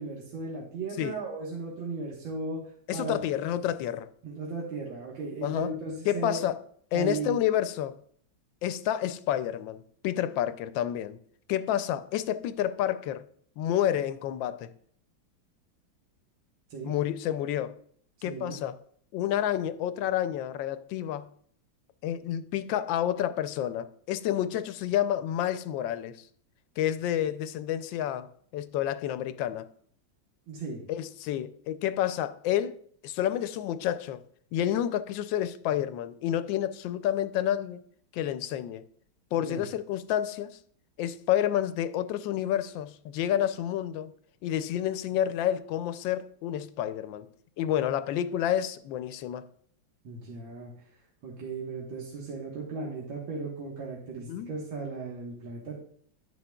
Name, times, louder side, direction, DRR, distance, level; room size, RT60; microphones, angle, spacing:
voice 1, 0.0-2.6 2.9-3.2 4.2-6.4 6.9-7.4 16.7-16.9 18.2-18.6 30.5-30.8 39.3-39.7 50.0-50.9 51.2-55.8, right 3 dB, 75° right, 2.1 m, -36 dB
voice 2, 2.9-4.1 5.4-5.7 6.1-6.6 6.9-8.0 8.6-11.2 11.5-13.3 13.6-14.7 16.8-17.8 18.2-18.8 19.1-21.3 22.0-26.2 26.8-29.7 30.9-32.8 33.0-34.2 34.5-37.8 38.1-38.8 39.3-40.6 41.0-44.1 44.4-47.3 47.6-49.5 54.3-54.5, left 11 dB, 80° left, 1.3 m, -29 dB
10.5 x 9.4 x 2.3 m
omnidirectional pair, 2.1 m